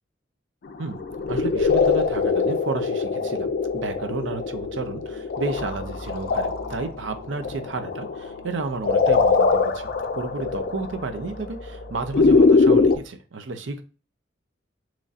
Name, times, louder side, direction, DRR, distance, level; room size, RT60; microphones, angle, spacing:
sound 1, 0.9-13.0, left 4 dB, 50° left, 0.4 m, -22 dB
voice 1, 1.3-13.8, right 3 dB, 70° right, 7 dB, 0.6 m, -32 dB
sound 2, 3.0-13.0, equal, 55° right, 1.0 m, -45 dB
4.0 x 3.1 x 2.4 m, 0.35 s
head